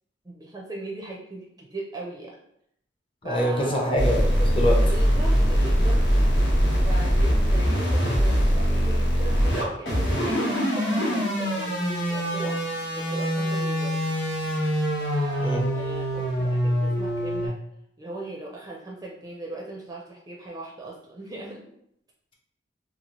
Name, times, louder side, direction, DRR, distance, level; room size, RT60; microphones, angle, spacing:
voice 1, 0.2-2.4 3.2-3.9 4.8-6.3 6.7-12.6 12.9-14.0 15.0-17.6 18.0-21.6, right 2 dB, 20° right, -2 dB, 0.4 m, -39 dB
voice 2, 3.2-4.9 15.4-15.7, equal, 30° left, -1 dB, 0.5 m, -25 dB
sound 1, 4.0-17.5, equal, 80° left, 1.0 m, -23 dB
2.8 x 2.5 x 2.9 m, 0.72 s
head